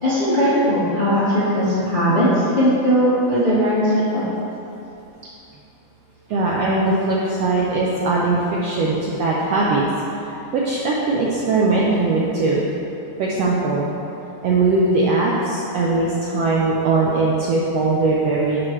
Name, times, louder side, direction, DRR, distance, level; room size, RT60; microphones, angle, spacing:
voice 1, 0.0-4.2, equal, 35° left, -11 dB, 0.8 m, -18 dB
voice 2, 6.3-9.8 10.2-12.6 13.2-13.9 14.4-18.6, right 3 dB, 80° right, -4 dB, 1.5 m, -20 dB
11.5 x 4.7 x 3.2 m, 2.8 s
omnidirectional pair, 3.6 m